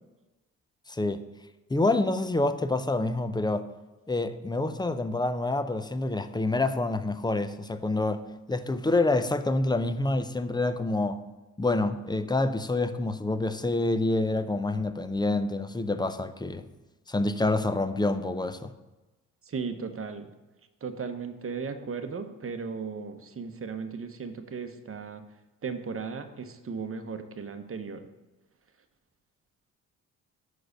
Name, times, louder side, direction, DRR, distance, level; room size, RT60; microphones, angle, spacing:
voice 1, 0.9-1.2 1.7-3.7 4.1-8.2 8.5-11.2 11.6-16.6 17.1-18.7, left 2 dB, 10° left, 11 dB, 0.5 m, -27 dB
voice 2, 19.4-20.3 20.8-25.3 25.6-28.1, right 5 dB, 35° right, 8 dB, 0.9 m, -36 dB
6.3 x 4.7 x 6.5 m, 1.1 s
supercardioid pair, 55°, 39 cm